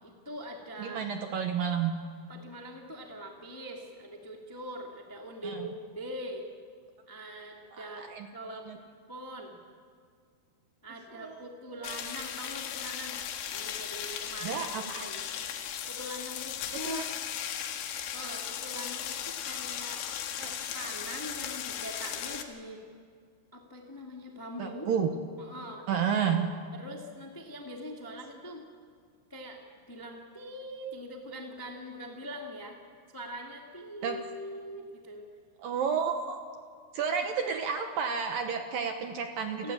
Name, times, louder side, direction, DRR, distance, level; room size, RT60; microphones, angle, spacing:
voice 1, 0.0-1.1 2.3-6.5 7.1-8.0 8.3-8.7 9.1-9.6 10.8-13.2 13.5-15.3 15.9-17.1 18.1-20.3 20.7-22.8 23.5-24.9 25.4-25.9 26.7-28.6 29.3-29.6 29.9-32.8 33.1-35.3 39.6-39.7, equal, 25° left, 0 dB, 0.4 m, -42 dB
voice 2, 0.8-1.9 5.4-5.7 7.7-8.8 11.1-11.5 11.8-12.1 14.4-15.0 16.8-17.0 20.4-20.6 24.6-25.2 25.9-26.5 34.0-34.2 35.6-36.4 36.9-39.7, right 7 dB, 65° right, 5 dB, 2.4 m, -31 dB
sound 1, 11.8-22.4, left 9 dB, 80° left, 3.8 m, -37 dB
29.0 x 15.0 x 8.7 m, 2.2 s
omnidirectional pair, 5.5 m